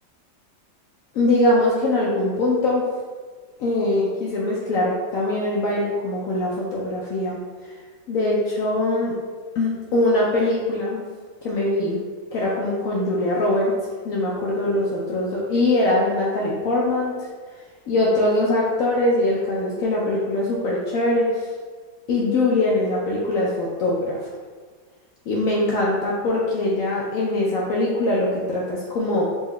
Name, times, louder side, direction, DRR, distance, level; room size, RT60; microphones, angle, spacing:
voice 1, 1.1-2.9 3.6-7.7 8.1-9.1 9.5-11.0 11.4-12.0 12.3-13.7 14.0-17.3 17.9-21.5 22.1-24.2 25.3-29.2, left 2 dB, 75° left, -4 dB, 0.7 m, -22 dB
4.0 x 2.2 x 3.5 m, 1.5 s
omnidirectional pair, 2.0 m